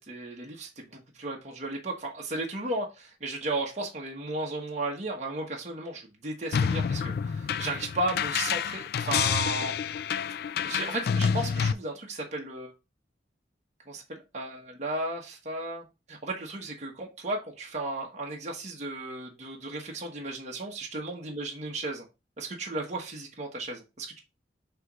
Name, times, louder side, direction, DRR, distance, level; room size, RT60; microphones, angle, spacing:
voice 1, 0.0-9.8 10.6-12.7 13.9-22.0 22.4-24.2, right 2 dB, 40° right, 1.2 m, -35 dB
sound 1, 6.5-11.7, left 7 dB, 55° left, 0.3 m, -28 dB
6.6 x 3.0 x 4.8 m
head